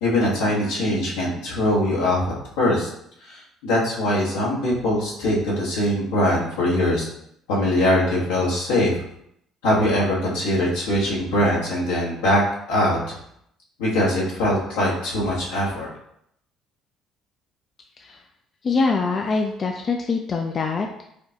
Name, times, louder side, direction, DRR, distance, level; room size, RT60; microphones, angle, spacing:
voice 1, 0.0-2.2 2.6-2.9 3.2-7.1 7.5-8.9 9.6-12.4 12.7-13.2 13.8-15.9, left 1 dB, 85° left, -6 dB, 1.3 m, -22 dB
voice 2, 18.6-21.1, left 4 dB, 45° left, 3 dB, 0.4 m, -24 dB
4.8 x 2.2 x 2.8 m, 0.74 s
hypercardioid pair, 65°, 0 cm